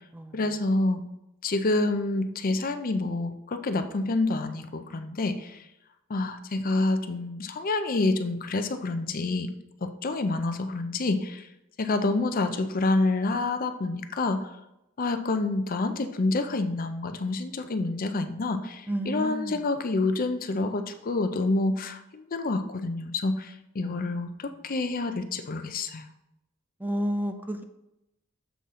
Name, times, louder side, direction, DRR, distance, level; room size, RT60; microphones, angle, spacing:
voice 1, 0.3-1.0 1.4-5.6 6.1-9.5 9.8-11.5 11.8-14.5 15.0-26.1, left 2 dB, 45° left, 9 dB, 0.5 m, -28 dB
voice 2, 18.9-19.6 23.8-24.0 26.8-27.6, equal, 10° right, 6 dB, 0.4 m, -31 dB
7.0 x 5.8 x 3.7 m, 0.88 s
head